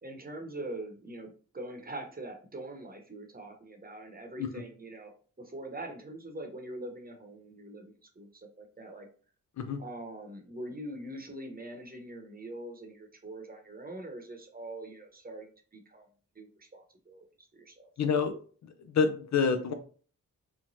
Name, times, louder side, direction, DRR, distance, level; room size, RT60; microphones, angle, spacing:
voice 1, 0.0-9.1 9.8-16.1 16.3-17.7, right 1 dB, 30° right, 3 dB, 0.9 m, -43 dB
voice 2, 18.0-18.3 18.9-19.7, left 5 dB, 60° left, 7 dB, 0.5 m, -27 dB
3.0 x 2.1 x 2.7 m, 0.42 s
cardioid pair, 50°, 32 cm